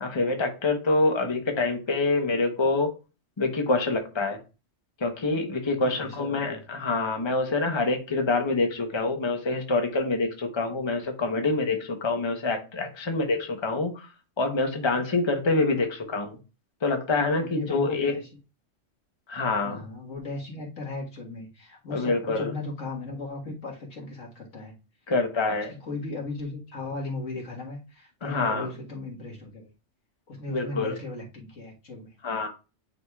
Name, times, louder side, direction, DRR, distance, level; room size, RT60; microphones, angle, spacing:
voice 1, 0.0-2.9 3.4-4.4 5.0-14.1 14.4-16.4 16.8-18.1 19.3-19.8 21.9-22.5 25.1-25.7 28.2-28.7 30.5-31.0 32.2-32.5, left 3 dB, 25° left, 4 dB, 1.0 m, -26 dB
voice 2, 5.7-6.6 17.3-18.3 19.6-24.7 25.6-29.7 30.3-32.2, left 2 dB, 85° left, -1 dB, 2.0 m, -37 dB
9.0 x 5.0 x 2.4 m, 0.31 s
omnidirectional pair, 1.3 m